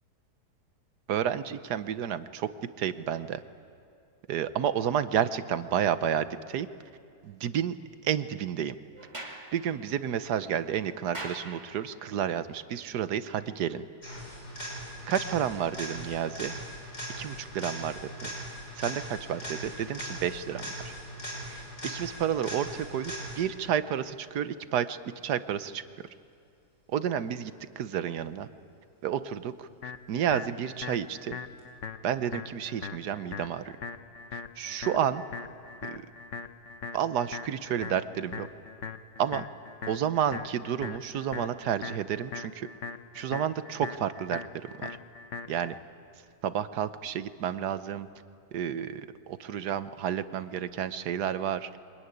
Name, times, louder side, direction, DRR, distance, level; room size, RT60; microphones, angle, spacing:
voice 1, 1.1-2.5 2.8-3.4 4.3-6.7 7.2-7.8 8.0-8.7 9.5-13.9 15.1-16.5 17.2-17.9 18.2-18.3 18.8-19.0 19.3-20.9 21.5-25.0 25.2-25.8 26.9-28.5 29.0-29.7 30.1-31.4 32.0-33.8 34.3-35.2 35.8-36.0 36.9-38.5 39.2-39.4 39.9-42.7 43.1-44.4 44.8-45.0 45.5-45.7 46.4-48.1 48.5-51.7, right 9 dB, 80° right, 12 dB, 1.4 m, -30 dB
Sliding door, 8.9-12.2, right 1 dB, 20° right, 2.0 m, -44 dB
sound 1, 14.0-23.6 31.6-31.7, equal, 75° left, 6.6 m, -40 dB
sound 2, 29.8-45.8, left 5 dB, 55° left, 1.1 m, -41 dB
24.5 x 21.0 x 9.7 m, 2.4 s
omnidirectional pair, 1.7 m